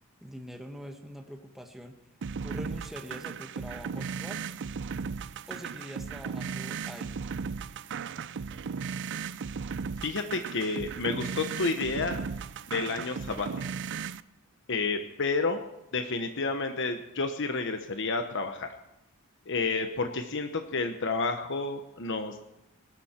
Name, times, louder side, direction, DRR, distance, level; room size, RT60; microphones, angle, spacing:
voice 1, 0.2-2.0 2.4-4.4 5.5-7.2, equal, ahead, 3 dB, 1.2 m, -44 dB
sound 1, 2.2-14.2, right 6 dB, 55° right, 0.4 m, -36 dB
voice 2, 10.0-12.2 12.7-13.5 14.7-15.6 15.9-18.7 19.5-22.4, left 3 dB, 60° left, 6 dB, 1.0 m, -30 dB
21.0 x 12.5 x 4.4 m, 0.90 s
head